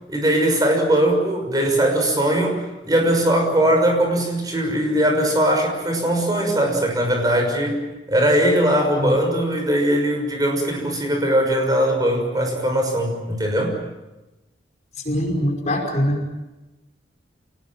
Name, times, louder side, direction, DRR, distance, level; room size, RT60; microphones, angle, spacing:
voice 1, 0.1-2.6 2.8-7.8 8.1-13.8, right 1 dB, 20° right, 2 dB, 6.2 m, -20 dB
voice 2, 15.0-16.3, equal, 40° left, 1 dB, 5.5 m, -22 dB
27.5 x 19.5 x 7.4 m, 1.1 s
head